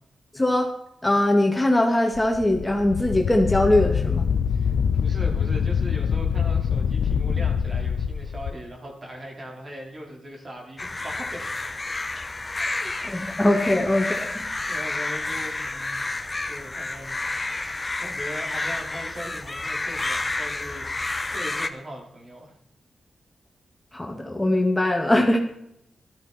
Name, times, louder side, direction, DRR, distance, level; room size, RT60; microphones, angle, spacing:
voice 1, 0.3-0.7 1.0-4.3 13.0-14.4 23.9-25.4, left 1 dB, 15° left, 2 dB, 2.3 m, -21 dB
Wind, 2.1-8.5, left 7 dB, 80° left, 0.6 m, -24 dB
voice 2, 4.5-11.5 12.7-13.9 14.4-16.0 16.4-22.6, equal, 40° right, -1 dB, 4.9 m, -40 dB
sound 1, 10.8-21.7, left 2 dB, 30° left, 1.3 m, -30 dB
13.5 x 12.0 x 4.5 m, 0.76 s
supercardioid pair, 45°, 0 cm